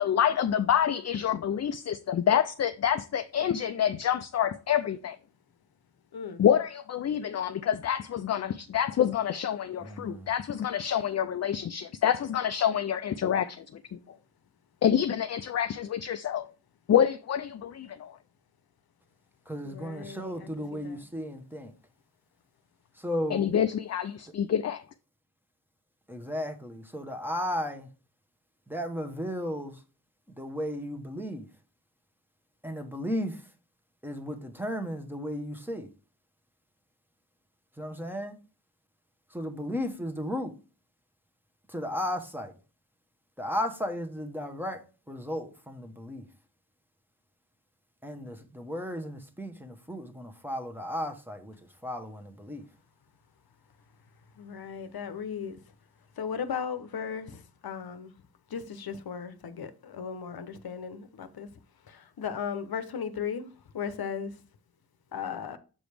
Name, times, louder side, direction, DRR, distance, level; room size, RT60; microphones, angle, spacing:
voice 1, 0.0-5.2 6.4-13.8 14.1-14.2 14.8-16.5 16.9-18.2 23.3-24.8, left 9 dB, 40° left, 0.4 m, -27 dB
voice 2, 6.1-6.4 19.6-20.5 20.8-21.0 54.3-55.6 56.2-58.1 58.5-61.5 61.9-64.3 65.1-65.6, left 7 dB, 65° left, 0.8 m, -36 dB
voice 3, 9.8-10.3 19.5-21.7 23.0-23.5 26.1-27.9 28.7-29.8 30.3-31.5 32.6-33.4 34.0-35.9 37.8-38.3 39.3-40.5 41.7-42.5 43.4-46.3 48.0-51.5 51.8-52.6, equal, 5° right, 0.9 m, -35 dB
7.1 x 5.1 x 3.3 m
cardioid pair, 75°, 40 cm